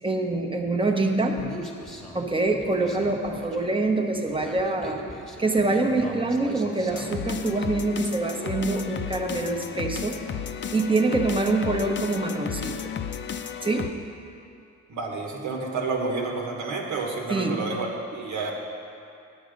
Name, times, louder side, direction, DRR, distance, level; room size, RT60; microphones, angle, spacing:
voice 1, 0.0-1.5 2.1-5.0 5.4-10.2 10.7-12.9 13.6-13.9 17.3-17.7, right 2 dB, 15° right, 3 dB, 1.0 m, -25 dB
Human voice, 1.4-7.4, equal, ahead, 1.3 m, -40 dB
sound 1, 6.9-13.9, left 7 dB, 40° left, 0.6 m, -33 dB
voice 2, 14.9-18.5, right 3 dB, 75° right, 0 dB, 1.6 m, -30 dB
8.8 x 8.6 x 5.2 m, 2.6 s
cardioid pair, 90°, 30 cm